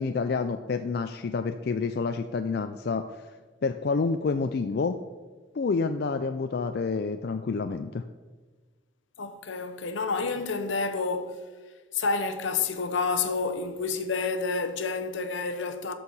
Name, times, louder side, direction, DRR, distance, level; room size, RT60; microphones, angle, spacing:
voice 1, 0.0-3.1 3.6-5.0 5.5-8.0, left 4 dB, 55° left, 0.4 m, -28 dB
voice 2, 9.2-11.4 11.9-15.9, left 4 dB, 80° left, 0.9 m, -29 dB
13.0 x 4.6 x 5.4 m
head